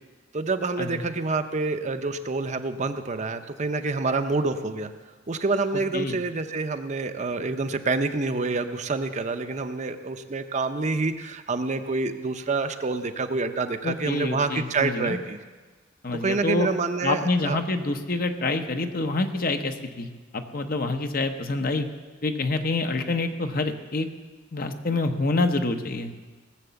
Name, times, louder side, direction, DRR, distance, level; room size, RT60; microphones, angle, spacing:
voice 1, 0.3-4.9 5.3-15.4 16.2-17.6, right 3 dB, 40° right, 8 dB, 0.7 m, -27 dB
voice 2, 13.8-15.2 16.0-16.7 17.0-21.9 22.2-24.1 24.5-26.1, left 2 dB, 50° left, 6 dB, 0.9 m, -27 dB
18.0 x 7.4 x 6.9 m, 1.3 s
head